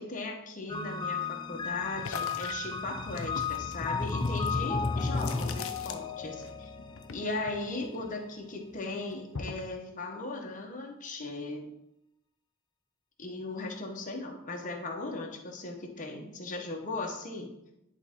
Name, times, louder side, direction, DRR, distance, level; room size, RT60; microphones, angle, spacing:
voice 1, 0.0-6.7 7.1-11.7 13.2-17.5, left 2 dB, 40° left, 1 dB, 1.1 m, -38 dB
sound 1, 0.7-8.0, left 4 dB, 20° left, 0.4 m, -34 dB
sound 2, 2.0-6.5 6.8-8.4 8.7-9.7, left 5 dB, 65° left, 0.6 m, -42 dB
10.5 x 3.7 x 3.7 m, 0.85 s
head